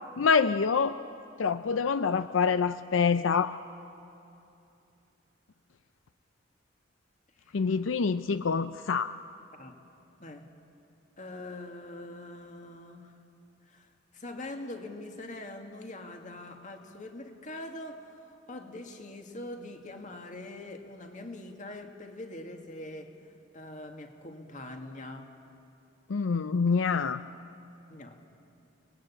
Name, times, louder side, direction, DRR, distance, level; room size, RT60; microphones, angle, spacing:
voice 1, 0.2-1.0 1.4-3.5 7.5-9.1 26.1-27.2, left 5 dB, 90° left, 12 dB, 0.5 m, -26 dB
voice 2, 11.2-13.2 13.7-23.1 23.5-25.3 27.9-28.2, left 1 dB, 40° left, 4 dB, 2.1 m, -43 dB
29.5 x 20.0 x 8.6 m, 2.7 s
head